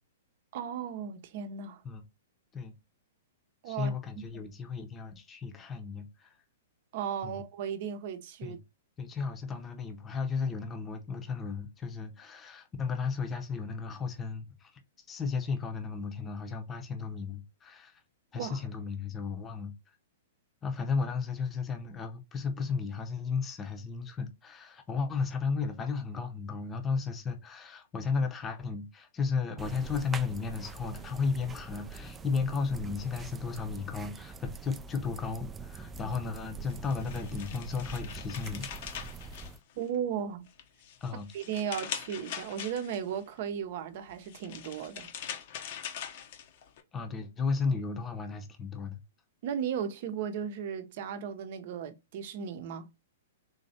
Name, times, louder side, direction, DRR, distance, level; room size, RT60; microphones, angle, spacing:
voice 1, 0.5-1.8 3.6-3.9 4.3-4.4 6.9-8.6 18.4-18.6 39.8-40.5 41.3-45.1 49.4-52.9, right 8 dB, 55° right, 0.7 m, -35 dB
voice 2, 3.7-6.4 7.2-7.4 8.4-8.6 9.0-14.8 15.1-18.0 18.3-19.7 20.6-38.9 41.0-41.3 46.9-49.0, left 5 dB, 20° left, 0.8 m, -34 dB
sound 1, 29.6-39.6, right 4 dB, 15° right, 0.3 m, -44 dB
sound 2, 36.7-40.1 40.5-43.2 44.1-46.8, left 9 dB, 55° left, 0.7 m, -42 dB
3.9 x 3.1 x 2.7 m
hypercardioid pair, 125°, 0 cm